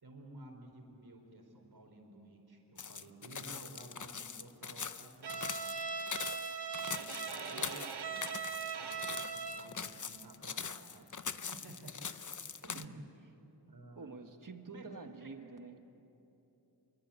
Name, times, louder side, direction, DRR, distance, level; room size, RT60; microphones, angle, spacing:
voice 1, 0.0-5.8 6.7-8.4 8.7-11.9 12.6-13.0 13.7-14.1 14.7-14.8 15.1-15.3, right 2 dB, 70° right, 2 dB, 4.6 m, -54 dB
sound 1, 2.8-12.8, left 6 dB, 50° left, 0.8 m, -42 dB
Bowed string instrument, 5.2-9.8, right 5 dB, 85° right, 1.2 m, -40 dB
voice 2, 14.0-15.9, right 4 dB, 55° right, 6 dB, 1.7 m, -48 dB
27.0 x 24.0 x 8.7 m, 3.0 s
wide cardioid pair, 70°, 39 cm